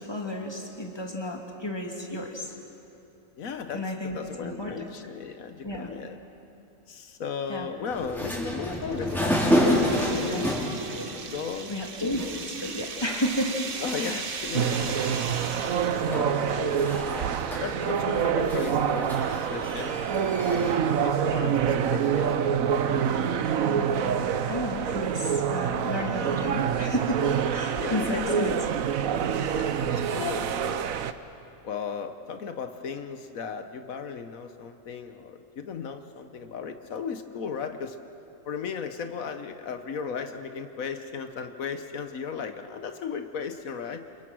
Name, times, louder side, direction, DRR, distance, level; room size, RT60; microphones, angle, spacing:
voice 1, 0.0-2.5 3.7-4.7 5.6-5.9 7.5-7.7 9.6-10.5 10.9-11.0 11.7-13.6 14.0-14.1 14.5-14.6 16.5-16.7 23.6-28.5 30.2-30.4, left 1 dB, 20° left, 1 dB, 2.7 m, -32 dB
voice 2, 3.4-6.2 6.9-9.8 10.1-10.4 11.3-11.7 13.8-15.2 15.9-16.7 17.6-20.0 20.4-22.6 27.7-28.6 29.5-30.9 31.6-38.0 38.4-44.0, left 6 dB, 85° left, 8 dB, 1.5 m, -36 dB
sound 1, 7.9-20.7, equal, ahead, 4.6 m, -31 dB
sound 2, 8.6-16.2, right 5 dB, 45° right, 1.1 m, -37 dB
sound 3, 14.5-31.1, right 8 dB, 85° right, 1.3 m, -26 dB
29.5 x 28.0 x 6.2 m, 2.8 s
omnidirectional pair, 1.4 m